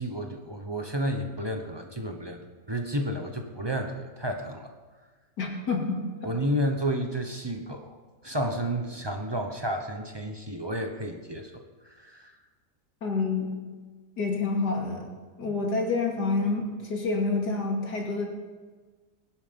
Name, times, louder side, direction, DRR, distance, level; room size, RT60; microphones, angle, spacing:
voice 1, 0.0-2.4 2.7-4.7 6.2-8.0 8.2-12.4, equal, 20° right, 4 dB, 0.8 m, -31 dB
voice 2, 5.4-6.0 13.0-13.5 14.2-15.1 15.4-18.3, left 3 dB, 75° left, 0 dB, 3.0 m, -28 dB
20.0 x 10.5 x 5.3 m, 1.4 s
omnidirectional pair, 1.8 m